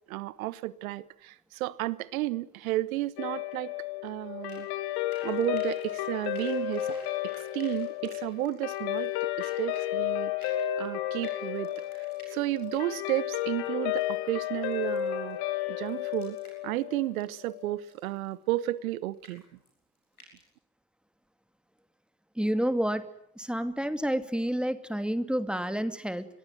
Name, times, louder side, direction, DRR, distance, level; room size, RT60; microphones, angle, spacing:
voice 1, 0.1-3.7 4.0-4.7 5.2-7.0 7.2-15.4 15.7-16.4 16.6-19.4, right 16 dB, 70° right, 1.2 m, -33 dB
Guitar, 3.2-17.7, left 13 dB, 60° left, 2.3 m, -33 dB
sound 1, 4.5-4.6 4.9-9.9 10.4-14.3 14.6-15.3 15.6-18.3 18.6-18.8 19.1-19.7 20.0-20.4, left 1 dB, 85° left, 7.3 m, -53 dB
voice 2, 22.4-26.3, equal, ahead, 2.6 m, -29 dB
28.0 x 22.5 x 9.5 m
figure-of-eight pair, 50°, 43 cm